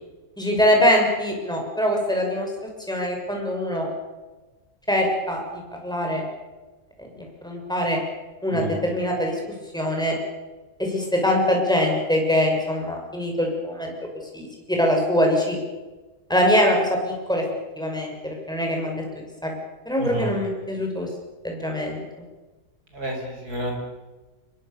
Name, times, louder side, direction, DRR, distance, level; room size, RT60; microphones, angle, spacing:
voice 1, 0.4-2.5 2.9-3.9 4.9-6.2 7.0-7.1 7.4-8.0 8.4-9.4 9.7-10.2 10.8-13.9 14.3-15.6 16.3-17.4 17.8-19.0 19.4-19.5 19.9-21.1 21.4-22.0, equal, ahead, 0 dB, 6.1 m, -23 dB
voice 2, 20.0-20.3 22.9-23.8, right 1 dB, 70° right, 1 dB, 6.6 m, -30 dB
25.0 x 21.5 x 6.9 m, 1.2 s
omnidirectional pair, 1.7 m